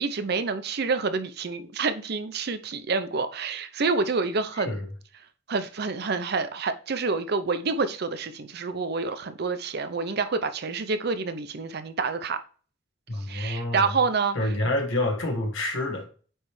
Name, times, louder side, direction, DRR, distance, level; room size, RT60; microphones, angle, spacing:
voice 1, 0.0-4.8 5.5-12.4 13.3-14.4, right 4 dB, 60° right, 0.6 m, -28 dB
voice 2, 4.5-4.9 13.1-14.0 14.3-16.1, left 1 dB, 85° left, 1.5 m, -28 dB
8.8 x 3.3 x 3.2 m
head